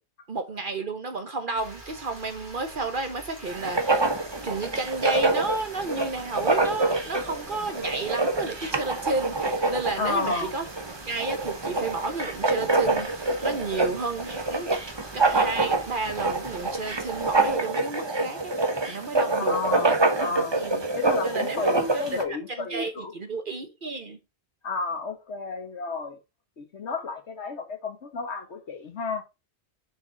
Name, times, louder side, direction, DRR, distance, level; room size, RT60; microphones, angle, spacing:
voice 1, 0.3-4.0 4.4-10.6 11.1-14.8 15.1-18.5 18.8-19.6 20.5-20.8 21.2-21.7 21.9-22.2 22.5-24.2, right 3 dB, 50° right, 1.2 m, -32 dB
sound 1, 1.5-17.6, right 2 dB, 75° right, 3.3 m, -45 dB
Writing, 3.5-22.2, right 2 dB, 25° right, 0.9 m, -26 dB
voice 2, 10.0-10.5 19.3-20.6 20.9-23.1 24.6-26.2 26.6-29.2, left 4 dB, 80° left, 1.7 m, -31 dB
6.5 x 5.0 x 4.1 m
omnidirectional pair, 1.1 m